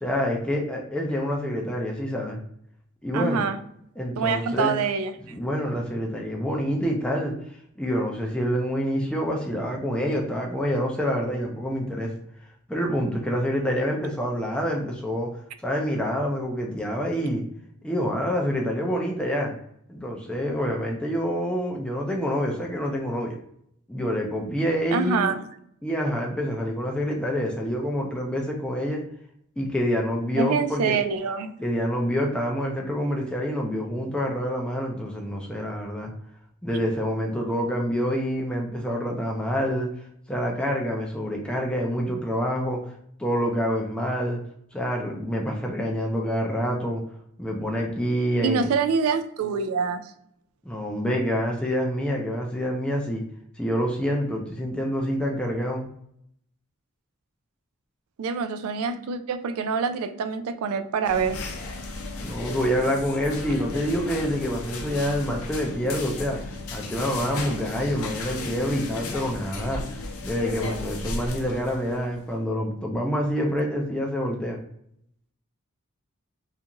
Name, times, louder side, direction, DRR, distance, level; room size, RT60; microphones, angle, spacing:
voice 1, 0.0-2.4 3.0-3.4 4.0-4.7 5.3-7.3 7.8-12.1 12.7-15.3 15.6-17.4 17.8-19.5 19.9-23.4 23.9-25.3 25.8-29.0 29.6-31.0 31.6-36.1 36.6-39.9 40.3-42.8 43.2-44.4 44.7-47.0 47.4-48.7 50.7-53.2 53.6-55.9 62.2-69.8 70.2-74.6, equal, 5° left, -1 dB, 0.3 m, -27 dB
voice 2, 3.1-3.6 4.2-5.1 24.9-25.4 30.4-31.5 48.4-50.1 58.2-61.4, right 5 dB, 80° right, 10 dB, 0.3 m, -25 dB
sound 1, 61.0-72.2, left 2 dB, 80° left, 0.5 m, -35 dB
2.5 x 2.3 x 2.8 m, 0.71 s
head